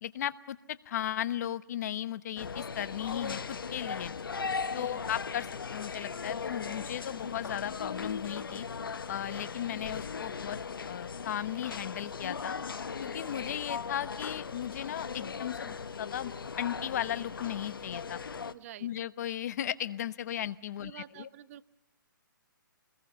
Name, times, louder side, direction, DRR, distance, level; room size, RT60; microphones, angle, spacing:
voice 1, 0.0-3.4 3.7-4.1 4.7-8.7 9.1-10.6 10.9-12.6 13.0-18.2 18.8-21.3, left 11 dB, 50° left, 15 dB, 1.0 m, -36 dB
sound 1, 2.4-18.5, left 5 dB, 85° left, 1.1 m, -38 dB
voice 2, 4.7-5.1 18.5-18.9 20.8-21.7, right 12 dB, 40° right, 15 dB, 1.0 m, -48 dB
27.5 x 21.0 x 6.9 m, 0.98 s
hypercardioid pair, 145°, 11 cm